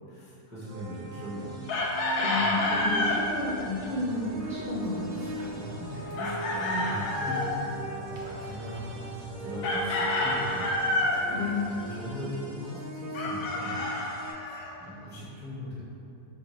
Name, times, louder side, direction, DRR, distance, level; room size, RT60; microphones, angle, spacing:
voice 1, 0.1-1.7 2.4-2.5 5.1-8.0 8.4-10.9 11.8-13.8 14.4-15.9, equal, 10° right, -9 dB, 0.5 m, -39 dB
sound 1, 0.6-14.3, right 1 dB, 70° right, 1.0 m, -41 dB
Chicken rooster, 1.7-3.2 6.2-7.5 9.6-11.2 13.1-14.7, left 2 dB, 90° left, 1.1 m, -28 dB
voice 2, 2.2-5.2 11.3-12.0, left 3 dB, 65° left, -8 dB, 0.4 m, -32 dB
sound 2, 2.6-12.0, right 2 dB, 85° right, 0.4 m, -44 dB
4.7 x 2.8 x 3.0 m, 2.8 s
omnidirectional pair, 1.6 m